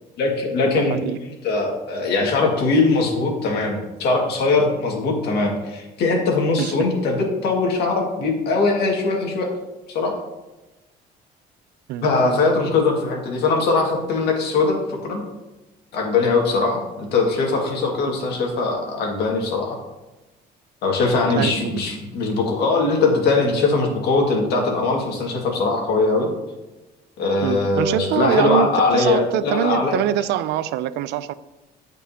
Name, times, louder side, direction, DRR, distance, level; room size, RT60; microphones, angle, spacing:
voice 1, 0.2-1.0 1.2-9.5 9.9-10.1 12.0-15.2 15.9-19.8 20.8-26.3 27.2-30.0, left 3 dB, 75° left, 0 dB, 2.1 m, -21 dB
voice 2, 0.7-1.2 6.6-6.9 11.9-12.4 21.4-21.8 27.4-31.3, right 11 dB, 80° right, 15 dB, 0.4 m, -24 dB
14.0 x 5.3 x 2.9 m, 1.1 s
cardioid pair, 110°, 17 cm